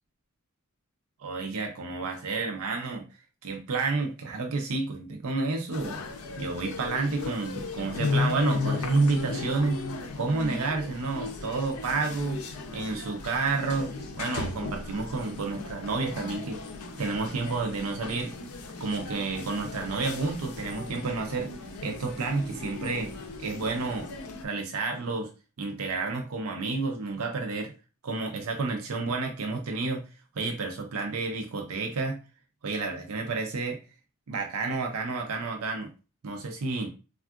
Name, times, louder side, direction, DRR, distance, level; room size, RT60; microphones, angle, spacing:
voice 1, 1.2-3.0 3.4-6.0 6.4-9.8 10.2-12.4 12.7-13.9 14.2-16.6 17.0-18.3 18.8-21.5 21.8-24.1 24.4-25.3 25.6-27.7 28.0-30.0 30.4-32.2 32.6-33.8 34.3-35.9 36.2-36.9, right 3 dB, 70° right, 3 dB, 0.5 m, -30 dB
sound 1, 5.7-24.4, left 3 dB, 85° left, 0.5 m, -36 dB
3.5 x 2.3 x 2.3 m, 0.32 s
head